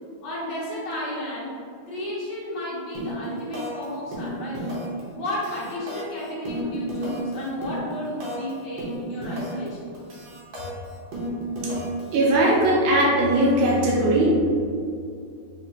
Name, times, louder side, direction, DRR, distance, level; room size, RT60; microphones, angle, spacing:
voice 1, 0.2-1.5 1.9-4.8 5.1-9.9, left 1 dB, 60° left, -6 dB, 1.7 m, -32 dB
sound 1, 2.9-3.2 3.5-3.8 4.1-5.0 5.3-8.5 8.8-9.7 9.9-12.1, right 1 dB, 65° right, 1.8 m, -32 dB
voice 2, 12.1-14.4, right 1 dB, 85° right, -4 dB, 1.6 m, -19 dB
4.2 x 2.9 x 4.2 m, 2.4 s
omnidirectional pair, 2.3 m